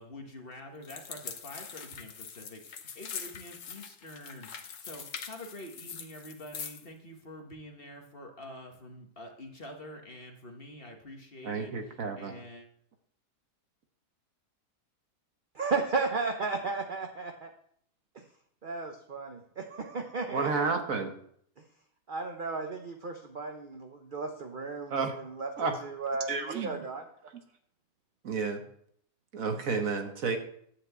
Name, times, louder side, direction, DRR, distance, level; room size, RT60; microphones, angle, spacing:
voice 1, 0.0-12.7, left 1 dB, 35° left, 2 dB, 1.5 m, -47 dB
sound 1, 0.8-6.9, left 7 dB, 55° left, 1.2 m, -43 dB
voice 2, 11.4-12.4 20.3-21.1 24.9-25.1 25.6-25.8 26.3-26.8 28.2-28.6 29.3-30.4, right 4 dB, 60° right, 5 dB, 1.5 m, -31 dB
voice 3, 15.5-17.5 18.1-18.3 18.6-20.6 21.6-21.7 22.1-25.5 25.8-27.0, right 4 dB, 40° right, 4 dB, 0.8 m, -34 dB
10.5 x 5.0 x 8.0 m, 0.66 s
omnidirectional pair, 1.7 m